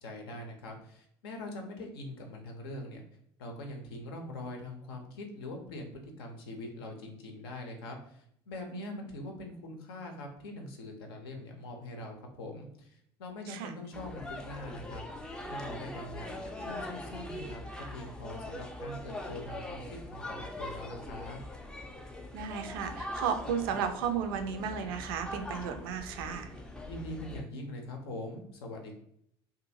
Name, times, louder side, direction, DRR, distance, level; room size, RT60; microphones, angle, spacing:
voice 1, 0.0-3.0 3.4-15.0 15.4-21.4 26.9-28.9, left 1 dB, 70° left, 3 dB, 0.6 m, -43 dB
sound 1, 13.9-27.4, left 1 dB, 5° left, 0.4 m, -42 dB
voice 2, 22.3-26.5, right 7 dB, 65° right, 6 dB, 0.4 m, -34 dB
2.6 x 2.4 x 2.6 m, 0.71 s
figure-of-eight pair, 65°, 13 cm